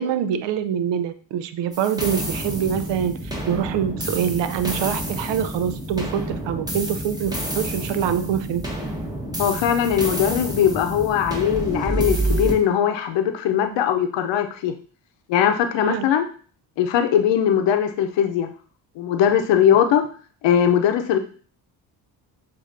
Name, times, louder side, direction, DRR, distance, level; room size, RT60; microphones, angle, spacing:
voice 1, 0.0-3.2 3.5-8.7 15.8-16.0, right 9 dB, 65° right, 12 dB, 0.6 m, -25 dB
sound 1, 1.7-12.5, right 1 dB, 10° right, 1.2 m, -28 dB
voice 2, 9.4-14.7 15.3-16.3 16.8-18.5 19.0-20.0 20.4-21.2, left 9 dB, 65° left, 7 dB, 0.8 m, -20 dB
7.2 x 2.6 x 2.6 m, 0.42 s
supercardioid pair, 65°, 48 cm